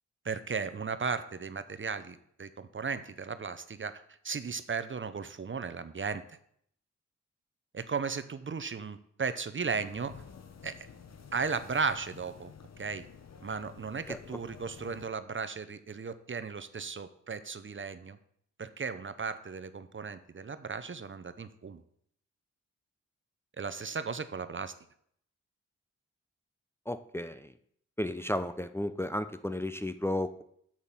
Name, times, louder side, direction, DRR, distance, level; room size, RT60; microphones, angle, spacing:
voice 1, 0.2-3.9 4.2-6.4 7.7-10.1 10.6-10.8 11.3-12.5 12.8-13.1 13.4-18.2 18.6-21.8 23.6-24.7, right 5 dB, 40° right, 12 dB, 0.8 m, -35 dB
sound 1, 9.6-15.1, left 6 dB, 60° left, 1.1 m, -51 dB
voice 2, 26.9-27.5 28.0-30.4, left 1 dB, 10° left, 9 dB, 0.6 m, -33 dB
7.4 x 6.4 x 7.4 m, 0.67 s
cardioid pair, 55°, 29 cm